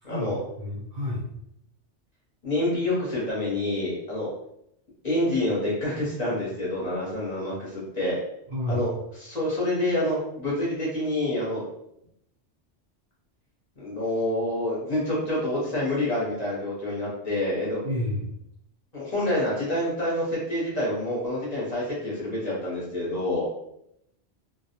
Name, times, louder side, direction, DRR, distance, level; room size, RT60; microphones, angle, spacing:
voice 1, 0.0-0.4 2.4-4.3 5.0-8.2 8.7-8.9 9.2-11.6 13.8-17.8 18.9-23.5, left 1 dB, 40° left, -6 dB, 0.8 m, -27 dB
voice 2, 0.6-1.2 8.5-8.8 17.8-18.3, left 1 dB, 55° right, -6 dB, 0.6 m, -30 dB
2.2 x 2.0 x 2.8 m, 0.77 s
omnidirectional pair, 1.2 m